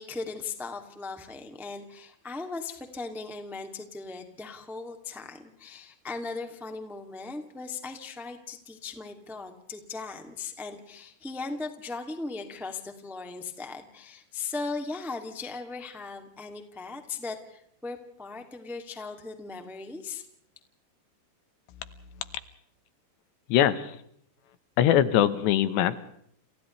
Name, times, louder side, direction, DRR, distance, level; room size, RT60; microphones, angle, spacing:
voice 1, 0.0-20.2, left 4 dB, ahead, 4 dB, 0.9 m, -38 dB
voice 2, 23.5-24.0 24.8-26.0, left 11 dB, 80° left, 12 dB, 3.3 m, -22 dB
30.0 x 30.0 x 3.3 m, 0.70 s
omnidirectional pair, 5.1 m